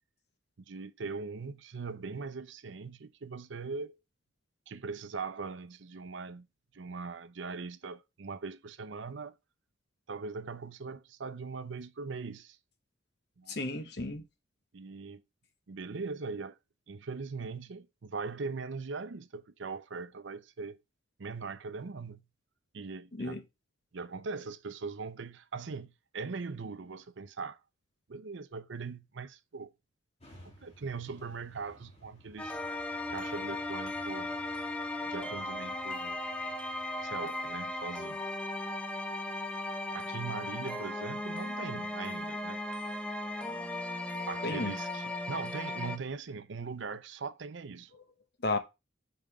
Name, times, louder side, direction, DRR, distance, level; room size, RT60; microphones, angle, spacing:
voice 1, 0.6-4.0 4.7-6.5 6.7-9.3 10.1-12.6 13.4-13.6 14.7-15.2 15.7-16.6 16.9-20.8 21.2-22.2 22.7-23.4 23.9-27.6 28.1-29.7 30.6-32.6 33.1-34.4 35.1-36.2 37.0-38.2 39.9-42.6 44.2-47.9, right 4 dB, 70° right, 0.6 m, -40 dB
voice 2, 13.5-14.2 23.1-23.4 44.4-44.7 47.9-48.1 48.4-48.6, left 2 dB, 55° left, 1.0 m, -33 dB
sound 1, 30.2-38.2, equal, 30° left, 2.1 m, -58 dB
sound 2, 32.4-46.0, left 2 dB, 5° left, 0.6 m, -37 dB
5.6 x 5.1 x 4.7 m
head